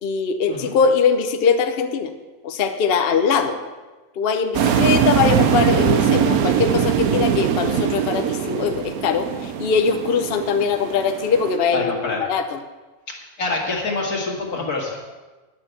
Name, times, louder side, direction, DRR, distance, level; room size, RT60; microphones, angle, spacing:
voice 1, 0.0-2.1 2.4-3.6 4.2-12.6, left 5 dB, 50° left, 6 dB, 0.8 m, -21 dB
sound 1, 4.5-11.6, right 8 dB, 75° right, 1.2 m, -21 dB
voice 2, 11.7-12.2 13.4-15.0, left 3 dB, 80° left, -1 dB, 2.5 m, -25 dB
9.8 x 6.1 x 7.8 m, 1.2 s
omnidirectional pair, 1.6 m